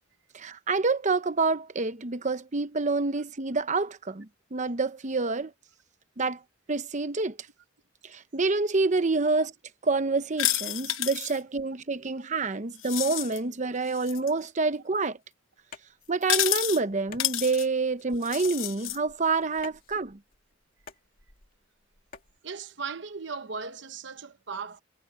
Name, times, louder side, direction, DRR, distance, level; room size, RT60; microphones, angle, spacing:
voice 1, 0.3-5.5 6.2-6.4 6.7-7.4 8.0-9.5 9.8-15.2 16.1-20.2, right 3 dB, 40° right, 0.8 m, -27 dB
sound 1, 10.4-11.4 12.8-13.4 13.9-14.3 16.2-16.8 17.2-17.7 18.2-19.0, left 14 dB, 90° left, 0.9 m, -29 dB
sound 2, 15.6-22.4, left 5 dB, 45° left, 2.5 m, -52 dB
voice 2, 22.4-24.8, right 5 dB, 65° right, 1.0 m, -37 dB
head